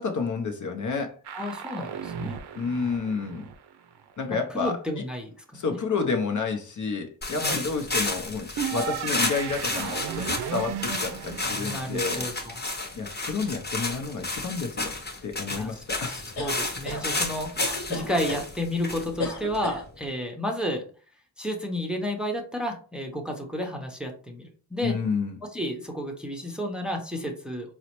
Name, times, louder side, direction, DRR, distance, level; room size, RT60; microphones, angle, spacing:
voice 1, 0.0-1.2 2.6-3.4 4.2-5.0 5.5-12.3 13.0-15.0 15.2-16.2 24.8-25.4, left 4 dB, 45° left, 4 dB, 0.6 m, -30 dB
sound 1, 1.2-4.1 8.6-13.3, right 8 dB, 70° right, 0.5 m, -35 dB
voice 2, 1.3-2.3 4.3-5.8 7.4-7.6 11.6-12.5 15.5-15.7 16.0-20.8 21.4-25.0 25.5-27.7, equal, ahead, 2 dB, 0.6 m, -32 dB
sound 2, 7.2-20.0, left 2 dB, 25° left, 0.9 m, -32 dB
sound 3, 16.4-17.0 17.6-18.5 19.2-19.8, left 1 dB, 75° left, 1.0 m, -33 dB
3.9 x 2.0 x 2.9 m, 0.41 s
cardioid pair, 65°, 42 cm